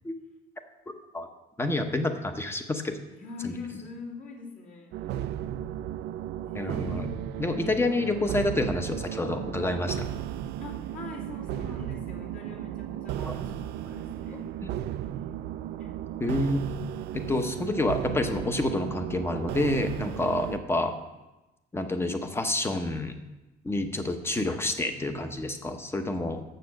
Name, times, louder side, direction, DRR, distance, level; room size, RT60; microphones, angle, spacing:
voice 1, 1.6-2.9 3.4-3.5 6.5-7.1 7.4-10.0 13.2-13.3 16.2-16.6 17.3-20.9 21.7-23.2 23.6-26.4, left 2 dB, 15° left, 7 dB, 0.8 m, -28 dB
voice 2, 3.1-5.0 6.4-7.2 7.5-7.8 10.6-14.5 15.8-16.0, left 4 dB, 50° left, -4 dB, 2.6 m, -42 dB
sound 1, 4.9-20.6, right 11 dB, 75° right, 0.4 m, -35 dB
7.0 x 6.7 x 6.3 m, 1.0 s
cardioid pair, 110°, 17 cm